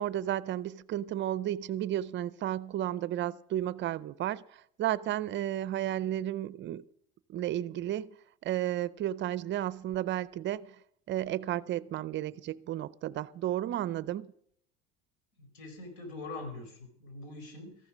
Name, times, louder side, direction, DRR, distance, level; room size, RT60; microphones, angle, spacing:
voice 1, 0.0-6.8 7.3-8.2 8.4-10.8 11.1-14.3, right 12 dB, 40° right, 0.5 m, -33 dB
voice 2, 15.4-17.8, left 2 dB, 85° left, 4.8 m, -43 dB
14.5 x 12.0 x 6.1 m
cardioid pair, 130°, 29 cm